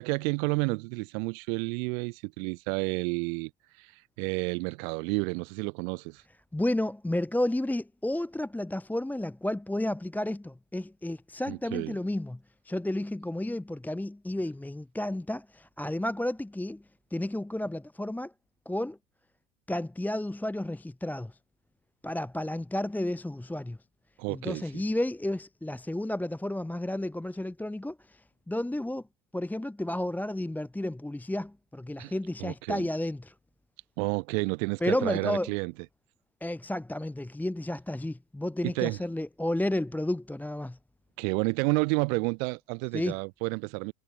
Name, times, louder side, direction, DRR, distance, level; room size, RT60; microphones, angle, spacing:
voice 1, 0.0-3.5 3.8-6.2 11.5-12.0 24.2-24.8 32.0-32.1 32.4-32.9 34.0-35.7 38.6-39.0 41.2-43.9, right 32 dB, 55° right, 0.9 m, -30 dB
voice 2, 6.5-12.4 12.6-16.8 17.1-18.3 18.7-19.0 19.7-21.4 22.0-23.8 24.3-29.0 29.3-33.3 34.8-35.5 36.4-40.8 42.9-43.2, left 1 dB, 5° left, 1.0 m, -32 dB
hypercardioid pair, 105°, 48 cm